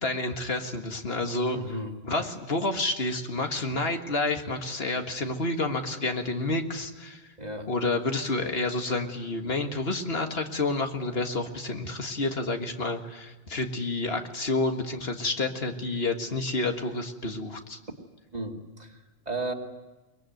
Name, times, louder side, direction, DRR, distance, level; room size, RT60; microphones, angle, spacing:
voice 1, 0.0-1.6 2.1-7.3 7.7-17.8, left 2 dB, 70° left, 5 dB, 2.0 m, -29 dB
voice 2, 1.5-1.9 7.4-7.7 18.3-19.5, right 1 dB, 40° right, 3 dB, 2.4 m, -34 dB
23.0 x 21.5 x 9.3 m, 1.1 s
omnidirectional pair, 1.1 m